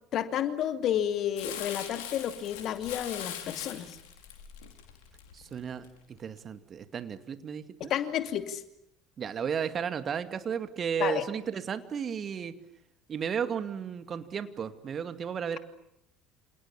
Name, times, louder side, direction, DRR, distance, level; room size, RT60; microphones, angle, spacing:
voice 1, 0.1-4.0 7.8-8.6 11.0-11.2, left 10 dB, 50° left, 9 dB, 2.7 m, -31 dB
Crumpling crinkling, 1.4-5.9 6.4-6.5, left 9 dB, 65° left, 4.9 m, -41 dB
voice 2, 5.3-7.9 9.2-12.6 13.1-15.6, right 7 dB, 40° right, 10 dB, 2.4 m, -34 dB
28.5 x 28.0 x 7.3 m, 0.77 s
figure-of-eight pair, 60°, 0 cm